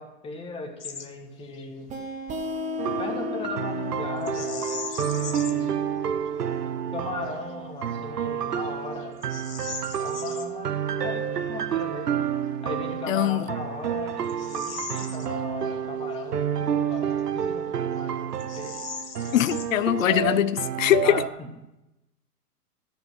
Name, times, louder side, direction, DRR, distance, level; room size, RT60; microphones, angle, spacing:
voice 1, 0.0-1.9 3.0-5.8 6.9-9.1 10.0-12.2 12.6-18.2 18.5-18.8 21.0-21.5, left 3 dB, 10° left, 1.4 m, -37 dB
Bird vocalization bird call bird song, 0.8-1.1 1.4-1.7 4.2-5.7 6.3-6.4 7.0-7.4 7.9-8.1 8.6-10.5 12.6-12.7 13.4-15.8 16.1-16.2 16.9-17.7 18.0-18.1 18.4-20.5, left 6 dB, 85° left, 1.3 m, -40 dB
sound 1, 1.9-7.3, left 4 dB, 15° right, 1.0 m, -36 dB
sound 2, 2.8-21.3, right 9 dB, 90° right, 0.8 m, -29 dB
voice 2, 13.1-13.4 19.3-21.2, left 13 dB, 60° left, 0.6 m, -22 dB
13.0 x 5.3 x 7.7 m
hypercardioid pair, 130°, 46 cm